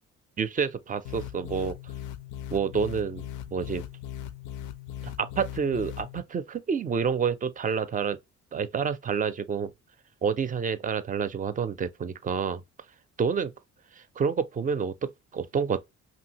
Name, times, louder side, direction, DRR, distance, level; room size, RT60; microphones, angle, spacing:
voice 1, 0.4-1.8 2.5-3.3 3.5-3.8 5.0-8.2 8.5-9.7 10.2-12.6 13.2-13.5 14.0-15.8, right 6 dB, 30° right, 0.4 m, -28 dB
sound 1, 1.0-6.2, left 10 dB, 85° left, 0.5 m, -39 dB
2.7 x 2.6 x 2.8 m
cardioid pair, 90°, 30 cm